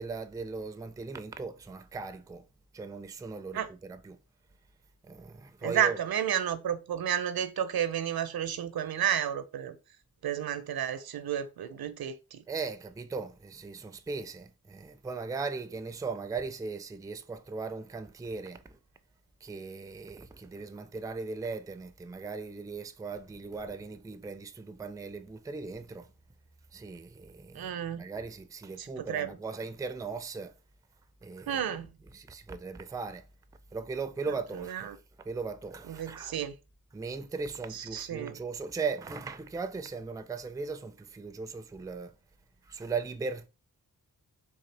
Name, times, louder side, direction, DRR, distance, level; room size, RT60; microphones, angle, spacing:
voice 1, 0.0-2.5 2.7-4.2 5.0-6.0 12.5-18.8 19.4-26.1 26.7-30.5 31.2-31.7 32.1-33.3 33.7-35.0 35.3-36.4 36.9-42.1 42.6-43.5, right 4 dB, 10° right, 0.4 m, -38 dB
voice 2, 5.6-9.8 10.2-12.4 27.5-28.1 28.8-29.3 31.5-31.9 34.5-35.0 35.9-36.5 37.7-38.4, right 9 dB, 70° right, 0.6 m, -32 dB
3.8 x 2.4 x 3.2 m
cardioid pair, 45°, 38 cm